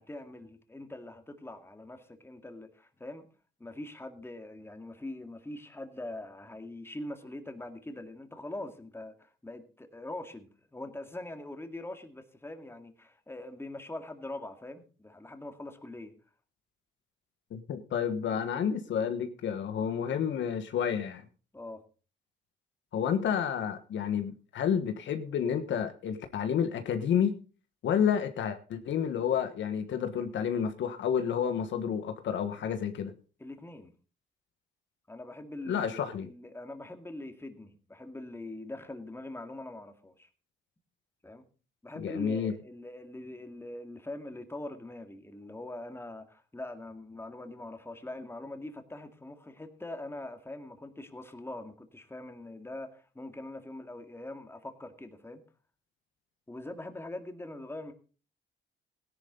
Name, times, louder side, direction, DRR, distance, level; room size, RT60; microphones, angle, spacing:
voice 1, 0.0-3.3 3.6-16.1 21.5-21.8 33.4-33.9 35.1-40.3 41.2-41.4 41.8-55.4 56.5-57.9, left 1 dB, 10° left, 6 dB, 2.2 m, -43 dB
voice 2, 17.5-21.2 22.9-27.4 27.8-33.1 35.7-36.3 42.0-42.5, left 8 dB, 70° left, 8 dB, 1.5 m, -30 dB
16.5 x 11.0 x 3.9 m, 0.36 s
cardioid pair, 90°, 20 cm